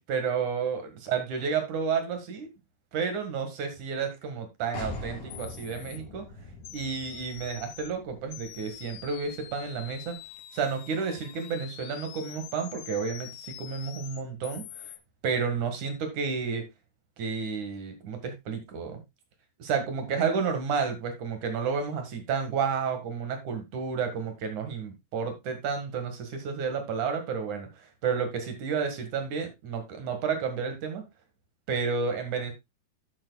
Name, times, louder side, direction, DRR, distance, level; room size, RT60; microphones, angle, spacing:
voice 1, 0.1-2.5 2.9-6.3 6.7-10.2 10.5-14.9 15.2-16.7 17.2-19.0 19.6-31.1 31.7-32.5, right 6 dB, 55° right, 6 dB, 2.7 m, -31 dB
sound 1, 4.7-10.3, left 2 dB, 55° left, 4.2 m, -44 dB
sound 2, 4.9-5.0 5.3-6.0 6.6-7.9 8.3-15.0, left 13 dB, 85° left, 2.9 m, -45 dB
12.0 x 7.8 x 2.3 m, 0.22 s
omnidirectional pair, 4.7 m